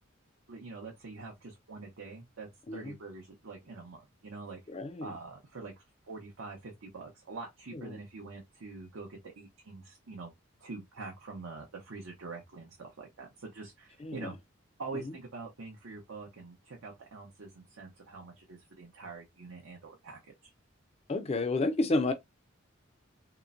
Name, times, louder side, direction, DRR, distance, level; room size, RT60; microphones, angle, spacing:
voice 1, 0.5-4.6 5.0-10.3 10.6-14.4 14.8-20.5, right 3 dB, 75° right, 0.7 m, -45 dB
voice 2, 2.7-3.0 4.7-5.2 7.7-8.0 14.0-14.3 14.9-15.1 21.1-22.1, left 2 dB, 30° left, 0.4 m, -31 dB
2.9 x 2.0 x 2.4 m
head